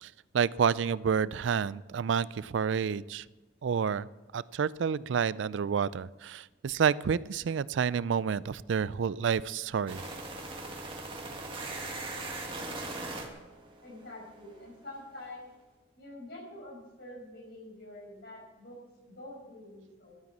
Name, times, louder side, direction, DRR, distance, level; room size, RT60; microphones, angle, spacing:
voice 1, 0.0-3.2 3.6-4.1 4.3-10.0, right 7 dB, 75° right, 19 dB, 0.4 m, -29 dB
sound 1, 9.9-14.7, right 2 dB, 30° right, 1.9 m, -40 dB
voice 2, 13.8-15.5 16.0-18.8 19.0-20.2, left 1 dB, 60° left, -2 dB, 5.7 m, -46 dB
12.5 x 9.4 x 7.3 m, 1.1 s
head